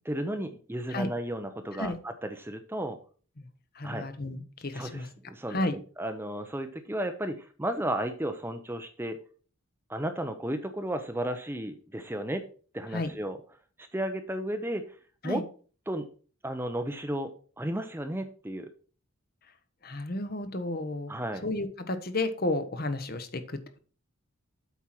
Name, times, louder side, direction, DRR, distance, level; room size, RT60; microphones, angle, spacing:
voice 1, 0.1-3.0 3.8-4.1 4.7-9.2 9.9-12.4 12.7-13.4 13.9-14.8 15.2-15.4 15.9-16.1 16.4-18.7 21.1-21.5, right 1 dB, 10° right, 8 dB, 0.6 m, -33 dB
voice 2, 3.7-5.1 5.5-5.8 12.9-13.1 15.2-15.4 19.8-23.6, left 2 dB, 45° left, 9 dB, 1.0 m, -32 dB
8.2 x 4.6 x 5.9 m, 0.40 s
head